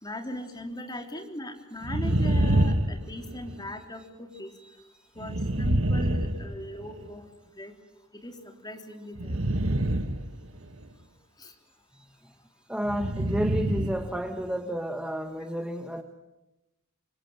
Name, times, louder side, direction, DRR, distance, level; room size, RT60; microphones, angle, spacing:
voice 1, 0.0-4.5 5.2-7.7 8.2-8.4 8.6-9.4 11.4-11.5, left 1 dB, 20° left, 4 dB, 3.6 m, -39 dB
sound 1, 1.8-3.7 5.2-7.1 9.2-10.9 12.8-14.2 14.4-14.5, right 1 dB, 85° right, 1.6 m, -27 dB
voice 2, 4.6-5.1 11.5-11.6 11.9-12.4 12.7-16.0, equal, 5° right, 6 dB, 1.3 m, -32 dB
26.5 x 24.0 x 9.2 m, 0.94 s
head